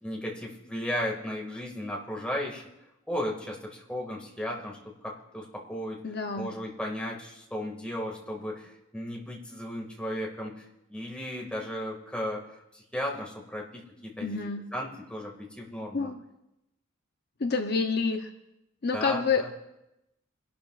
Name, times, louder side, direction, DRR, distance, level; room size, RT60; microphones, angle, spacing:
voice 1, 0.0-2.6 3.1-6.0 6.4-10.6 10.9-12.4 12.7-16.1 18.9-19.5, equal, 5° left, -2 dB, 2.0 m, -35 dB
voice 2, 6.0-6.5 14.2-14.6 15.9-16.2 17.4-18.3 18.8-19.4, left 5 dB, 50° left, 5 dB, 0.7 m, -28 dB
26.5 x 12.0 x 2.4 m, 0.90 s
head